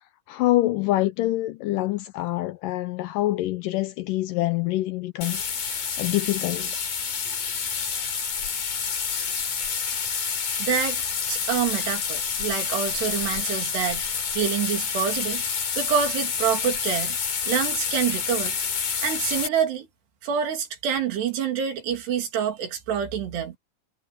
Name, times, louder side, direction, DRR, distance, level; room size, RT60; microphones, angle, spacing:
voice 1, 0.3-6.8, left 16 dB, 80° left, 1.9 m, -26 dB
sound 1, 5.2-19.5, left 6 dB, 55° left, 5.0 m, -28 dB
voice 2, 10.6-11.0 11.3-15.5 15.8-17.2 17.5-18.6 19.0-19.9 20.2-23.6, right 8 dB, 90° right, 5.0 m, -27 dB
omnidirectional pair, 4.6 m